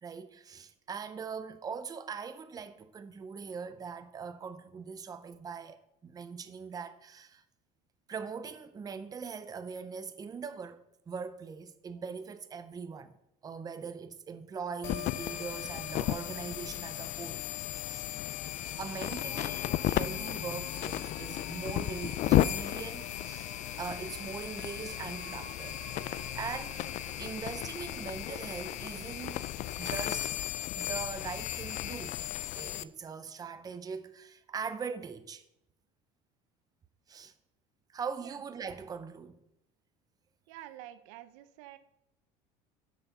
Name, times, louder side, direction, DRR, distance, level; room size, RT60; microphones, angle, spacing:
voice 1, 0.0-5.8 6.0-7.4 8.1-13.1 13.4-17.4 17.9-18.2 18.8-25.8 26.3-26.8 27.2-29.5 29.8-30.3 30.8-32.2 32.5-35.4 37.1-37.3 37.9-39.4, right 6 dB, 25° right, 0.7 m, -41 dB
sound 1, 14.8-32.8, left 14 dB, 50° left, 0.4 m, -34 dB
sound 2, 18.4-28.3, right 7 dB, 50° right, 1.4 m, -54 dB
voice 2, 40.5-41.8, right 13 dB, 85° right, 0.7 m, -48 dB
7.5 x 6.7 x 5.8 m
cardioid pair, 125°, 16 cm